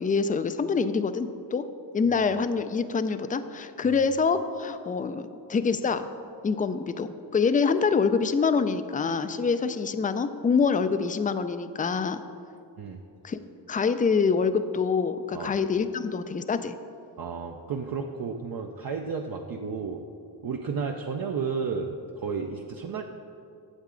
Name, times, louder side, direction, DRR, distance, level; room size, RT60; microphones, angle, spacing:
voice 1, 0.0-1.7 1.9-6.1 6.4-12.2 13.2-13.4 13.7-16.7, left 5 dB, 20° left, 11 dB, 0.3 m, -25 dB
voice 2, 17.2-20.0 20.4-23.0, right 5 dB, 50° right, 2 dB, 0.6 m, -32 dB
8.8 x 7.4 x 3.8 m, 2.5 s
cardioid pair, 65°, 46 cm